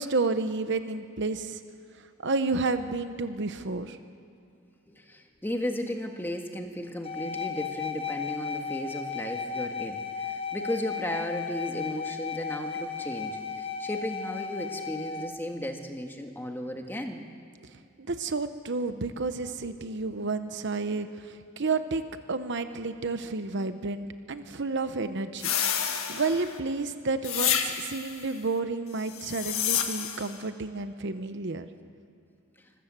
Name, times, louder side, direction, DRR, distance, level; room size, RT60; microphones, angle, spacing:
voice 1, 0.0-1.6 2.2-4.0 18.0-22.0 22.3-25.5 26.1-31.7, right 3 dB, 60° right, 10 dB, 0.9 m, -31 dB
voice 2, 4.9-17.2 19.6-19.7, left 1 dB, 10° left, 4 dB, 1.6 m, -35 dB
sound 1, 7.0-15.3, left 6 dB, 30° left, 1.0 m, -35 dB
sound 2, 25.4-26.6 27.2-28.1 29.1-30.3, left 9 dB, 90° left, 1.6 m, -29 dB
25.5 x 14.5 x 7.5 m, 2.6 s
head